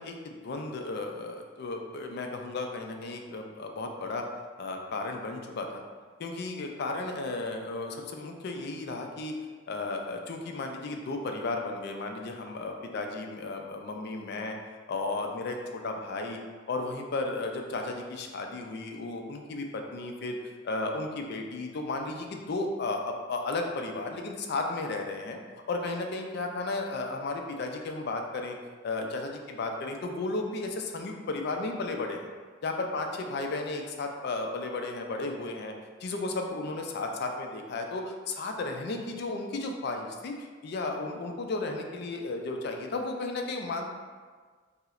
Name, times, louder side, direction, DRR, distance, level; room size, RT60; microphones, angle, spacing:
voice 1, 0.0-4.3 4.6-5.8 6.2-9.4 9.7-14.6 14.9-16.4 16.7-20.4 20.6-25.4 25.7-28.6 28.8-32.2 32.6-35.7 36.0-43.9, left 3 dB, 55° left, 3 dB, 0.4 m, -34 dB
5.5 x 2.0 x 2.4 m, 1.5 s
head